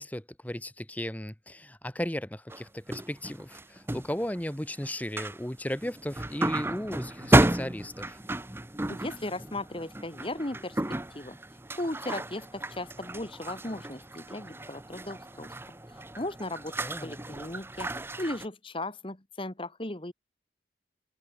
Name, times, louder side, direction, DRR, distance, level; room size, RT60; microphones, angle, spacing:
voice 1, 0.0-8.2 16.8-17.2, left 1 dB, 10° left, 1.2 m, -36 dB
sound 1, 2.5-4.4 4.8-5.4 5.7-18.5, right 1 dB, 10° right, 0.9 m, -32 dB
voice 2, 8.9-10.8 11.1-11.4 11.8-15.5 15.9-20.1, left 1 dB, 25° left, 1.6 m, -37 dB
open air
head